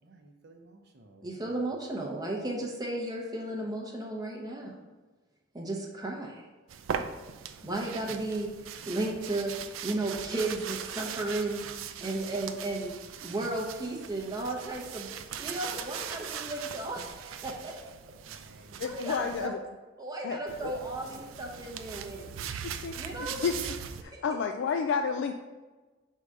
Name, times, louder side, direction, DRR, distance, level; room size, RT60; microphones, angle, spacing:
voice 1, 0.0-1.6 18.2-18.9, right 2 dB, 60° right, 3 dB, 0.7 m, -56 dB
voice 2, 1.2-4.7 5.5-6.4 7.6-8.5 8.9-9.5 9.8-11.6 12.0-13.0 13.2-15.1 15.4-17.8 18.8-19.6 20.0-22.3 22.8-23.5 24.0-24.2, right 2 dB, 20° right, -1 dB, 0.7 m, -34 dB
sound 1, 6.7-19.5 20.5-24.0, right 8 dB, 90° right, 0.4 m, -40 dB
voice 3, 18.8-19.6 20.2-20.7 22.4-22.5 22.8-23.8 24.0-25.3, left 6 dB, 65° left, 5 dB, 0.3 m, -31 dB
4.8 x 3.7 x 5.4 m, 1.3 s
head